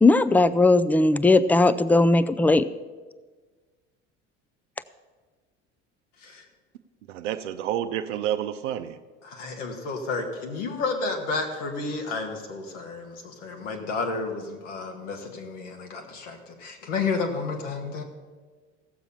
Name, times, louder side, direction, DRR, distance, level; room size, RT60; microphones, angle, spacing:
voice 1, 0.0-2.7, left 2 dB, 5° left, 15 dB, 0.4 m, -18 dB
voice 2, 7.1-8.9, right 11 dB, 85° right, 7 dB, 0.6 m, -29 dB
voice 3, 9.2-18.0, left 4 dB, 80° left, 2 dB, 1.9 m, -31 dB
16.5 x 7.1 x 5.6 m, 1.4 s
hypercardioid pair, 70°, 36 cm